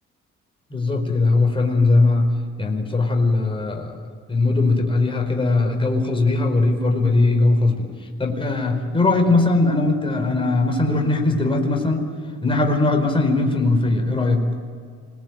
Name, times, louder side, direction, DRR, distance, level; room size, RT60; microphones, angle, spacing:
voice 1, 0.7-2.3 2.6-4.0 4.3-7.9 8.2-12.1 12.4-14.4, left 2 dB, 15° left, 2 dB, 4.5 m, -19 dB
25.0 x 20.5 x 9.4 m, 2.1 s
cardioid pair, 90°, 30 cm